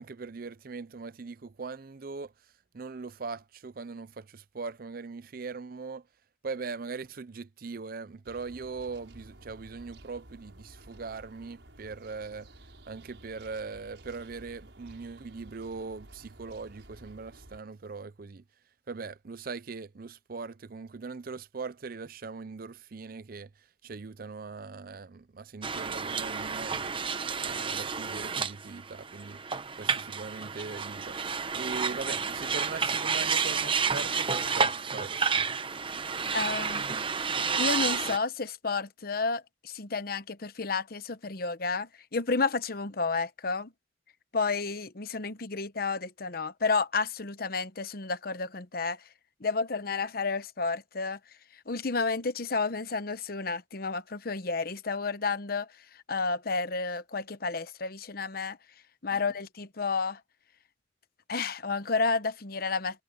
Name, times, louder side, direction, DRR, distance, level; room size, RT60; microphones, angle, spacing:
voice 1, 0.0-2.3 2.7-6.1 6.4-12.5 12.9-18.4 18.9-27.0 27.4-29.4 29.8-35.5 59.1-59.2, right 4 dB, 55° right, 0.6 m, -40 dB
sound 1, 8.2-17.6, right 1 dB, 85° right, 5.8 m, -53 dB
sound 2, 25.6-38.2, right 5 dB, 30° right, 0.9 m, -30 dB
voice 2, 36.3-36.8 37.6-43.7 44.3-49.0 49.4-51.2 51.7-55.7 56.1-58.6 59.0-60.2 61.3-63.0, left 4 dB, 55° left, 1.0 m, -31 dB
head